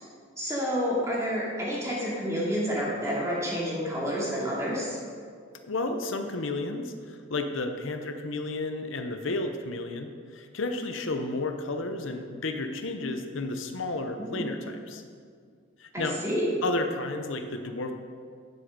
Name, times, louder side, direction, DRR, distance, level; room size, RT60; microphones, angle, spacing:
voice 1, 0.4-5.0 14.3-14.4 15.9-16.5, equal, 15° right, -6 dB, 2.5 m, -29 dB
voice 2, 5.6-15.0 15.8-16.2 16.6-17.9, left 2 dB, 80° left, 6 dB, 0.8 m, -32 dB
9.9 x 7.3 x 5.2 m, 2.1 s
head